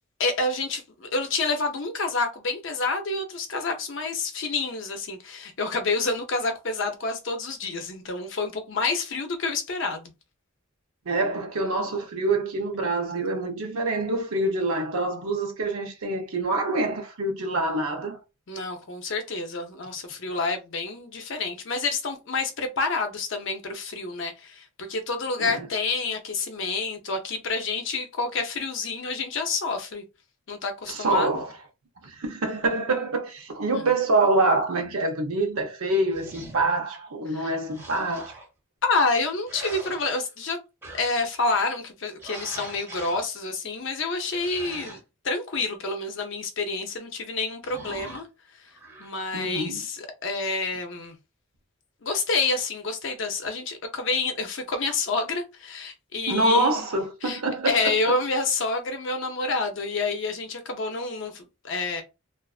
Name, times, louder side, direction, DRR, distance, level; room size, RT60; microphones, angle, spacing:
voice 1, 0.2-10.1 18.5-30.0 30.5-31.4 37.3-37.5 38.8-40.6 40.9-48.3 49.0-51.1 52.0-56.9 57.2-57.4 57.7-62.0, left 3 dB, 60° left, 0.6 m, -28 dB
voice 2, 11.1-18.2 25.4-25.7 30.9-31.5 32.0-38.4 49.3-49.8 56.3-58.0, right 2 dB, 85° right, 0.7 m, -26 dB
sound 1, 36.1-36.7 37.7-38.5 39.4-40.4 40.8-41.3 42.2-43.2 44.3-45.0 47.6-48.2 48.7-49.1, right 2 dB, 10° right, 1.1 m, -42 dB
2.4 x 2.4 x 2.4 m
head